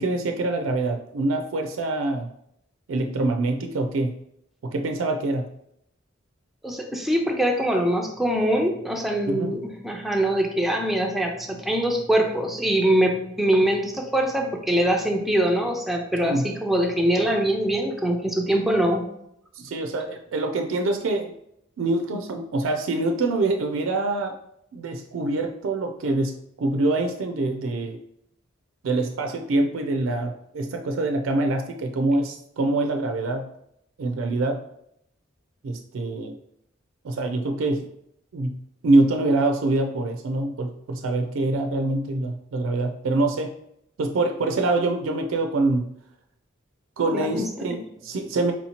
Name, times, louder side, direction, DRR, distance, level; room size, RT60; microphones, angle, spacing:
voice 1, 0.0-2.3 2.9-4.1 4.6-5.5 9.3-9.5 16.2-16.5 19.6-21.3 21.8-24.4 24.7-28.0 28.8-33.5 34.0-34.6 35.6-36.4 37.0-37.8 38.3-38.6 38.8-43.5 44.0-45.9 47.0-48.5, right 2 dB, 75° right, 4 dB, 0.4 m, -25 dB
voice 2, 6.6-19.1 47.1-47.8, right 1 dB, ahead, 1 dB, 0.4 m, -23 dB
4.2 x 2.8 x 2.8 m, 0.75 s
head